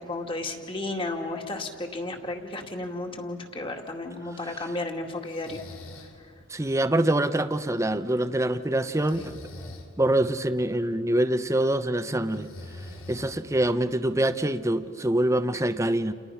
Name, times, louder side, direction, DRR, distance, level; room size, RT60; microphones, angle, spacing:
voice 1, 0.0-5.6 6.0-6.3, left 2 dB, 25° left, 2.3 m, -33 dB
Breathing, 5.2-6.2 8.9-9.9 12.3-13.7, left 2 dB, 90° left, 3.2 m, -43 dB
voice 2, 6.5-9.3 10.0-12.5 13.1-16.1, right 1 dB, 15° right, 0.8 m, -25 dB
30.0 x 29.5 x 5.8 m
head